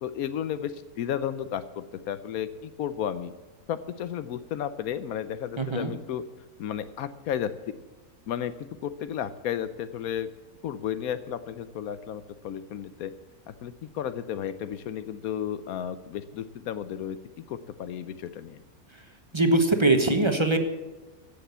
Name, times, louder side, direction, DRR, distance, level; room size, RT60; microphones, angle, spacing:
voice 1, 0.0-3.3 3.7-6.2 6.6-7.7 8.3-8.5 8.8-10.3 10.6-13.1 13.6-17.2 17.5-18.6, left 9 dB, 80° left, 12 dB, 1.1 m, -33 dB
voice 2, 5.6-5.9 18.9-19.0 19.3-20.6, right 2 dB, 20° right, 6 dB, 1.0 m, -22 dB
15.0 x 6.8 x 8.0 m, 1.2 s
omnidirectional pair, 1.5 m